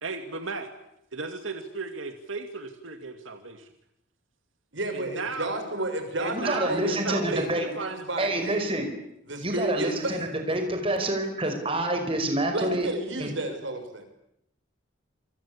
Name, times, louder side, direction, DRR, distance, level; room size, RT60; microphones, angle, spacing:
voice 1, 0.0-0.7 1.1-3.7 4.9-5.7 6.2-8.4, right 4 dB, 90° right, 6 dB, 2.4 m, -36 dB
voice 2, 4.7-8.7 9.3-10.3 11.2-11.3 12.5-14.0, right 1 dB, 70° right, 7 dB, 6.6 m, -32 dB
voice 3, 6.3-7.7 8.2-8.9 9.4-12.9 13.2-13.3, right 1 dB, 30° right, 5 dB, 5.4 m, -27 dB
28.0 x 24.5 x 8.6 m, 0.80 s
head